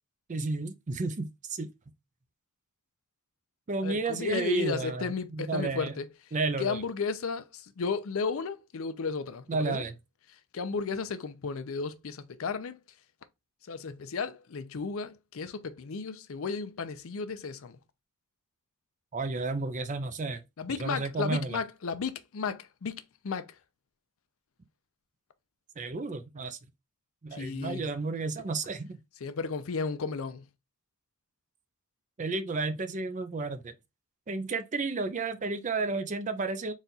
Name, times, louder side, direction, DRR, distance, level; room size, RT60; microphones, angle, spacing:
voice 1, 0.3-1.7 3.7-5.9 6.3-6.8 9.5-9.9 19.1-20.4 20.8-21.6 25.8-26.6 27.2-29.0 32.2-33.7 34.3-36.7, right 3 dB, 35° right, 0.4 m, -32 dB
voice 2, 3.8-6.1 6.6-9.8 10.5-12.8 13.7-17.8 20.6-23.6 27.3-27.8 29.2-30.5, left 5 dB, 65° left, 0.5 m, -34 dB
4.1 x 2.4 x 3.9 m
head